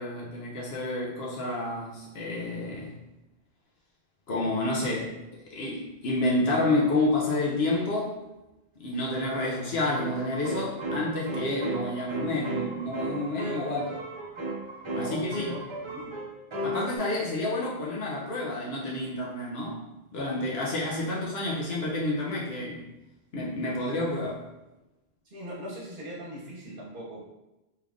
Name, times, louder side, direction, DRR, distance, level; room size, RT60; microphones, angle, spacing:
voice 1, 0.0-2.9 4.3-5.2 5.5-8.2 8.8-14.0 14.9-15.6 16.6-19.8 20.1-22.9 23.3-24.4, left 2 dB, 70° left, -4 dB, 0.9 m, -29 dB
sound 1, 8.9-9.0 9.9-17.0, right 2 dB, 35° right, 0.5 m, -35 dB
voice 2, 14.9-16.2 25.3-27.2, equal, 55° right, -5 dB, 1.1 m, -40 dB
3.3 x 2.4 x 3.4 m, 0.98 s
omnidirectional pair, 1.1 m